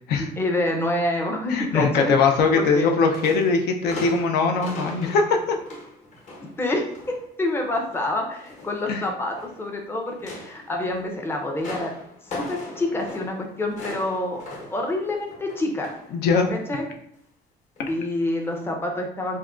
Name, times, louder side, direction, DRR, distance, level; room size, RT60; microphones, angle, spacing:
voice 1, 0.2-2.3 2.5-2.9 6.6-11.9 12.2-14.4 14.7-15.9 16.5-16.9 17.9-19.4, left 1 dB, 15° left, 1 dB, 0.5 m, -27 dB
voice 2, 1.5-5.6 8.9-9.0 16.1-16.5 17.8-17.9, left 4 dB, 75° left, 3 dB, 0.4 m, -21 dB
sound 1, 2.3-2.8 3.1-7.2 7.6-9.7 10.1-16.2 16.5-16.7 17.8-17.9 18.5-18.6, left 2 dB, 45° left, 1.0 m, -40 dB
3.5 x 2.1 x 2.4 m, 0.71 s
cardioid pair, 110°, 17 cm